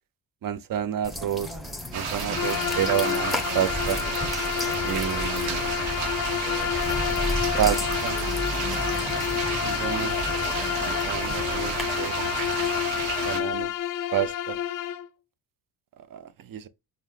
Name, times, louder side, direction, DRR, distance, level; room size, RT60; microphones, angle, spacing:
voice 1, 0.4-1.5 1.9-4.0 4.8-5.6 7.6-8.2 9.6-10.2 10.8-12.3 13.2-13.7 14.1-14.6 16.1-16.7, right 10 dB, 45° right, 0.6 m, -29 dB
sound 1, 1.0-11.8, equal, ahead, 0.9 m, -34 dB
sound 2, 1.9-13.4, right 6 dB, 85° right, 1.0 m, -32 dB
Bowed string instrument, 2.3-15.1, left 11 dB, 45° left, 0.4 m, -29 dB
5.3 x 2.3 x 3.3 m
supercardioid pair, 60°, 49 cm